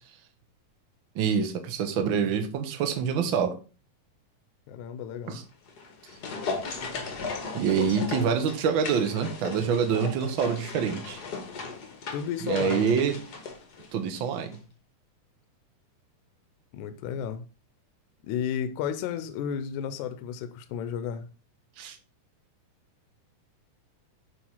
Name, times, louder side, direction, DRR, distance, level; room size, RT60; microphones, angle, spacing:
voice 1, 1.1-3.6 5.3-5.4 7.5-11.2 12.4-13.1 13.9-14.5 21.8-22.0, right 7 dB, 75° right, 1.1 m, -26 dB
voice 2, 4.7-5.4 12.1-13.0 16.7-17.4 18.3-21.3, left 8 dB, 75° left, 1.9 m, -33 dB
sound 1, 5.6-14.3 14.5-14.6, left 4 dB, 60° left, 1.0 m, -36 dB
9.4 x 3.3 x 5.6 m
omnidirectional pair, 3.8 m